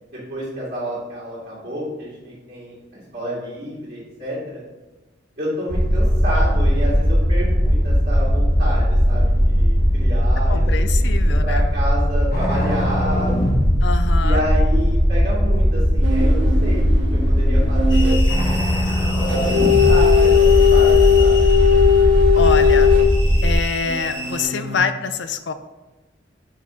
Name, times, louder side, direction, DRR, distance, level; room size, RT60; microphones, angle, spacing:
voice 1, 0.3-4.6 5.4-13.4 14.2-16.8 17.1-21.3, equal, 50° right, -9 dB, 2.2 m, -29 dB
sound 1, 5.7-23.5, equal, 50° left, 1.6 m, -18 dB
voice 2, 10.5-11.6 13.8-14.4 22.3-22.9 23.4-25.5, left 5 dB, 70° left, 10 dB, 0.5 m, -25 dB
sound 2, 16.0-18.2 19.3-23.1 23.8-24.8, left 8 dB, 85° right, 1.2 m, -18 dB
sound 3, 17.9-24.4, left 1 dB, 25° left, 1.4 m, -33 dB
5.7 x 5.0 x 3.7 m, 1.1 s
head